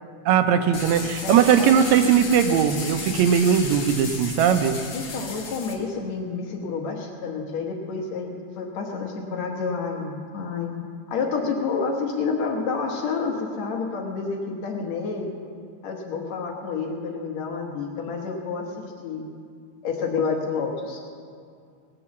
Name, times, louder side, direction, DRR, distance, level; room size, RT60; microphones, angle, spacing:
voice 1, 0.3-4.8, right 8 dB, 75° right, 8 dB, 2.0 m, -19 dB
sound 1, 0.7-5.7, left 4 dB, 45° left, 1.8 m, -34 dB
voice 2, 1.2-1.8 4.9-10.7 11.1-15.3 15.8-19.2 19.8-21.0, left 5 dB, 70° left, 1 dB, 2.3 m, -29 dB
19.0 x 6.9 x 7.1 m, 2.2 s
omnidirectional pair, 3.4 m